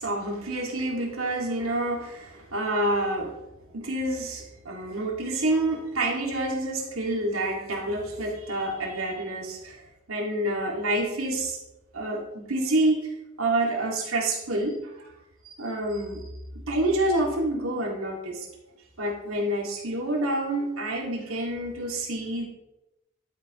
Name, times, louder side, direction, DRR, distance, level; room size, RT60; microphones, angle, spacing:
voice 1, 0.0-3.3 3.7-9.8 10.1-11.6 11.9-13.1 13.4-15.1 15.4-16.3 16.7-18.5 19.0-22.5, right 1 dB, 85° right, 0 dB, 2.3 m, -28 dB
12.0 x 8.6 x 3.1 m, 0.93 s
head